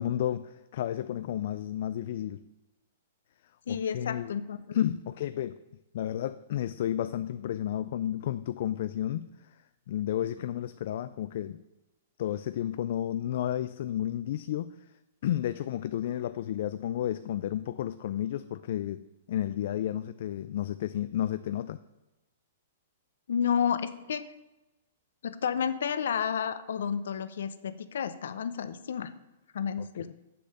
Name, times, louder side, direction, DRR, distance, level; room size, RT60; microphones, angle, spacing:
voice 1, 0.0-2.4 3.7-4.3 4.7-5.6 5.9-9.5 9.9-11.6 12.2-14.7 15.2-19.0 19.3-21.8 30.0-30.1, left 11 dB, 50° left, 0.4 m, -32 dB
voice 2, 3.7-4.6 4.8-4.9 23.3-24.3 25.2-29.1 29.5-30.1, left 7 dB, 75° left, 0.8 m, -31 dB
7.6 x 6.9 x 6.7 m
hypercardioid pair, 165°, 0 cm